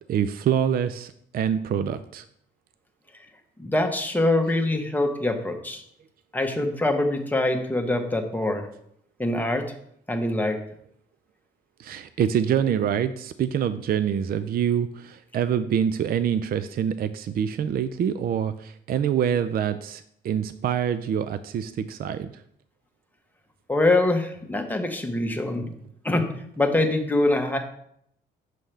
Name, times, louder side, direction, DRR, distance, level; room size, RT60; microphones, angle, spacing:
voice 1, 0.1-2.2 11.8-22.3, right 8 dB, 50° right, 12 dB, 0.4 m, -25 dB
voice 2, 3.6-5.8 6.3-8.7 9.2-9.7 10.1-10.6 23.7-25.7 26.0-27.6, left 2 dB, 10° left, 3 dB, 1.1 m, -24 dB
7.5 x 5.5 x 3.4 m, 0.70 s
cardioid pair, 90°, 20 cm